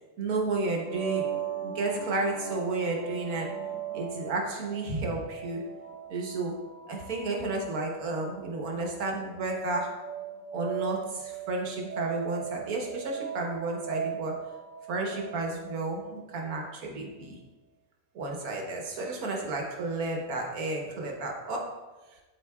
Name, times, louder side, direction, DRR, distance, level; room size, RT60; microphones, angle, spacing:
voice 1, 0.2-1.4 1.6-3.6 3.9-5.6 6.1-6.6 6.9-10.0 10.5-14.5 14.9-17.4 18.1-21.8, right 2 dB, 85° right, 1 dB, 1.5 m, -32 dB
sound 1, 0.7-16.3, right 8 dB, 5° left, 1.5 m, -39 dB
11.5 x 3.9 x 2.3 m, 1.2 s
omnidirectional pair, 1.5 m